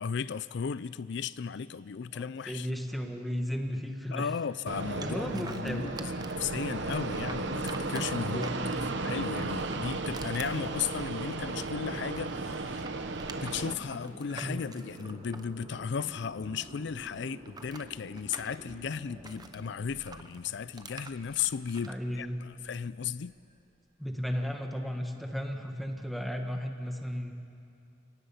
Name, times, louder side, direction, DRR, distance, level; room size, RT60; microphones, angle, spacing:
voice 1, 0.0-2.7 4.1-8.5 9.0-12.9 13.4-23.3, left 6 dB, 65° left, 0.4 m, -35 dB
voice 2, 2.1-4.3 5.0-6.3 8.2-8.8 14.4-14.7 21.9-22.4 24.0-27.3, equal, ahead, 1.4 m, -35 dB
Fixed-wing aircraft airplane, 4.7-13.7, right 3 dB, 70° right, 1.0 m, -34 dB
sound 1, 5.0-6.5 6.8-9.0 9.4-12.0 12.2-16.4 16.7-19.6 20.1-22.0, right 4 dB, 20° right, 0.9 m, -47 dB
sound 2, 8.8-24.1, right 1 dB, 40° right, 2.4 m, -52 dB
30.0 x 18.0 x 5.7 m
head